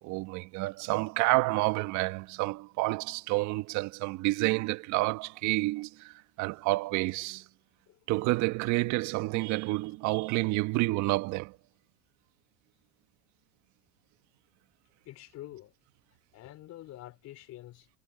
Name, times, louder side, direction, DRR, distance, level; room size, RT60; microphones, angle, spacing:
voice 1, 0.0-7.4 8.1-11.6, right 21 dB, 55° right, 1.6 m, -29 dB
voice 2, 15.1-15.7 16.3-17.9, left 14 dB, 50° left, 3.6 m, -47 dB
hypercardioid pair, 85°, 34 cm